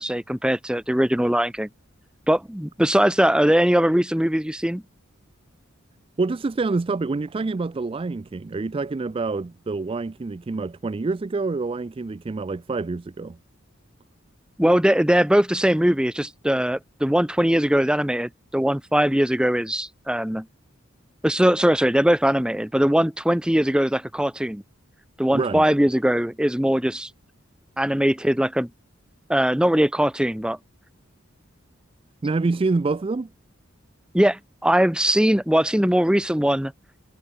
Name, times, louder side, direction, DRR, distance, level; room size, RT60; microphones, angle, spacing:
voice 1, 0.0-1.7 2.3-4.8 14.6-20.5 21.2-24.6 25.2-27.1 27.8-28.7 29.3-30.6 34.1-36.7, equal, 5° right, 0.7 m, -21 dB
voice 2, 6.2-13.4 25.3-25.6 32.2-33.3, right 3 dB, 25° right, 0.4 m, -26 dB
head